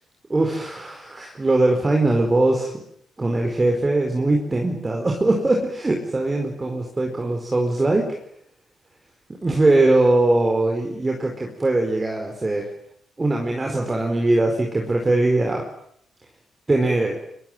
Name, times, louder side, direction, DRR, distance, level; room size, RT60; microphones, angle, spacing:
voice 1, 0.3-2.7 3.2-8.1 9.4-12.7 13.2-15.6 16.7-17.1, right 2 dB, 20° right, 1 dB, 4.8 m, -21 dB
24.5 x 24.0 x 9.2 m, 0.71 s
cardioid pair, 125°, 0 cm